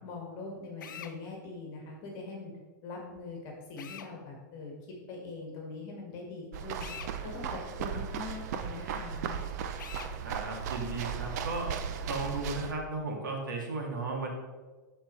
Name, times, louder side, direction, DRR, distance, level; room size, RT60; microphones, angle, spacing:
voice 1, 0.0-2.5 2.8-4.7 5.1-6.9 7.2-9.4, left 3 dB, 40° left, -1 dB, 1.9 m, -42 dB
Drill, 0.8-1.2 3.8-4.1 6.8-7.1 9.8-10.1, left 8 dB, 80° left, 0.7 m, -44 dB
sound 1, 6.5-12.7, right 7 dB, 55° right, 0.6 m, -36 dB
voice 2, 10.2-11.7 12.1-14.3, right 3 dB, 85° right, 0 dB, 2.1 m, -35 dB
12.5 x 4.4 x 3.2 m, 1.3 s
hypercardioid pair, 130°, 10 cm